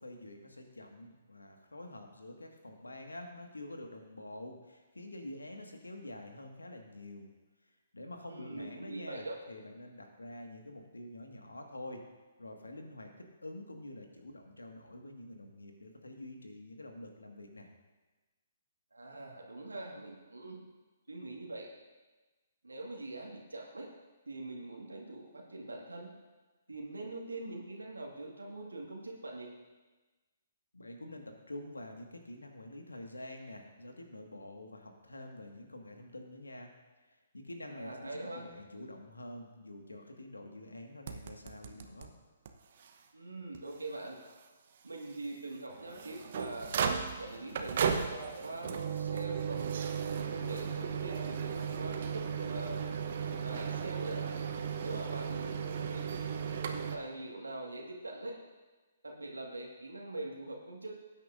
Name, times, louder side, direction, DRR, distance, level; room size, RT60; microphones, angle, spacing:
voice 1, 0.0-7.3 7.9-12.0 12.4-17.7 30.7-36.7 37.1-42.1, left 1 dB, 80° left, 3 dB, 1.7 m, -47 dB
voice 2, 8.3-9.4 18.9-20.6 21.1-21.7 22.6-23.9 24.3-26.1 26.7-29.5 37.7-38.5 43.1-44.2 44.8-46.7 47.2-48.1 48.4-49.8 50.1-52.8 53.3-54.3 54.8-56.3 56.7-58.3 59.0-61.0, right 2 dB, 80° right, 0 dB, 1.7 m, -43 dB
sound 1, 41.1-42.1 42.5-42.6 42.8-42.9 43.5-43.6 45.7-57.0, right 7 dB, 50° right, 0.9 m, -35 dB
18.5 x 9.1 x 2.6 m, 1.2 s
figure-of-eight pair, 125°, 0 cm